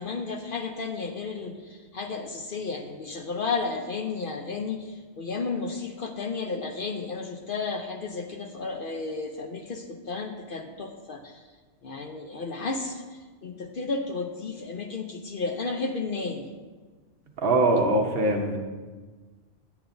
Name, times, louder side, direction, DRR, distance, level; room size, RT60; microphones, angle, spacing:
voice 1, 0.0-11.4 11.8-13.0 13.4-16.5, left 4 dB, 55° left, 4 dB, 0.7 m, -33 dB
voice 2, 17.4-18.6, right 2 dB, 55° right, 3 dB, 1.0 m, -22 dB
9.6 x 8.7 x 2.6 m, 1.4 s
omnidirectional pair, 1.2 m